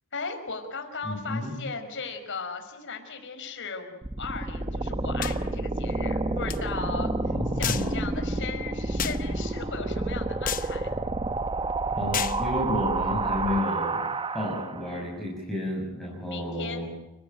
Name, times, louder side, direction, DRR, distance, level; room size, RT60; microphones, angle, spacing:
voice 1, 0.1-10.9 16.2-16.9, left 4 dB, 55° left, 6 dB, 5.1 m, -37 dB
voice 2, 1.0-1.5 7.3-8.0 11.9-14.0 14.3-16.9, left 1 dB, ahead, -4 dB, 6.6 m, -31 dB
sound 1, 4.0-15.0, right 2 dB, 25° right, 0.9 m, -29 dB
sound 2, 5.2-5.4 6.5-6.6 7.6-7.9 9.0-9.2 10.4-10.7 12.1-12.4, left 9 dB, 40° left, 1.0 m, -30 dB
30.0 x 15.0 x 9.3 m, 0.99 s
head